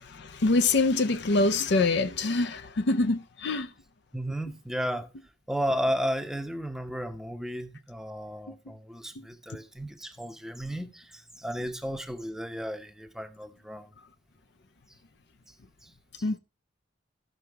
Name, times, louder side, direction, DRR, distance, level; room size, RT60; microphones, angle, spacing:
voice 1, 0.0-3.7 16.2-16.4, left 3 dB, 65° left, 0.6 m, -25 dB
voice 2, 4.1-5.1 5.5-13.9 15.8-16.4, equal, 5° right, 0.7 m, -34 dB
13.5 x 5.8 x 3.4 m
head